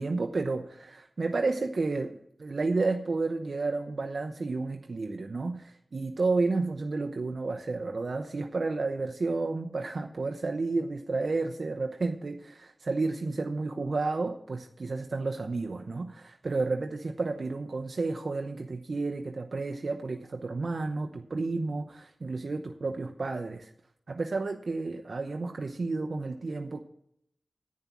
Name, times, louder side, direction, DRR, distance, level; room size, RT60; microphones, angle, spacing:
voice 1, 0.0-23.7 24.1-26.8, right 3 dB, 75° right, 4 dB, 0.8 m, -31 dB
10.5 x 9.6 x 6.1 m, 0.72 s
wide cardioid pair, 75°, 0 cm